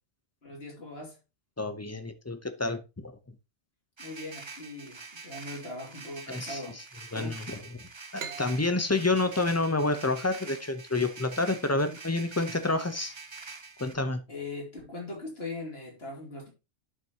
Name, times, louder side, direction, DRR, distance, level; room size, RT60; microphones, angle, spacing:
voice 1, 0.4-1.2 4.0-6.8 7.1-7.4 14.3-16.5, left 2 dB, 55° left, 3.0 m, -40 dB
voice 2, 1.6-3.2 6.3-6.8 7.1-7.4 7.8-13.1 13.8-14.2, left 2 dB, 15° left, 0.7 m, -29 dB
sound 1, 4.0-13.9, right 4 dB, 30° right, 0.7 m, -45 dB
sound 2, 8.2-11.6, right 6 dB, 75° right, 1.3 m, -45 dB
11.0 x 5.9 x 2.9 m
omnidirectional pair, 1.2 m